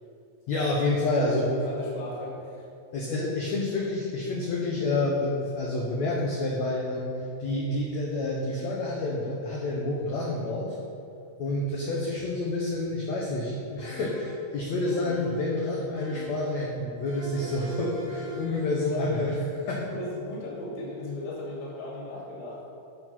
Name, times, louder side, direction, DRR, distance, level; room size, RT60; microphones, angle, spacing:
voice 1, 0.5-1.5 2.9-7.1 7.4-10.7 11.4-19.9, left 2 dB, 80° left, -3 dB, 1.6 m, -28 dB
voice 2, 1.2-2.6 17.3-17.5 18.2-18.6 19.9-22.6, left 1 dB, 25° left, -6 dB, 2.0 m, -37 dB
sound 1, 13.8-14.4 14.9-15.5 16.0-16.6 17.1-18.7, right 4 dB, 60° right, 3.0 m, -44 dB
12.0 x 4.6 x 5.9 m, 2.6 s
omnidirectional pair, 4.6 m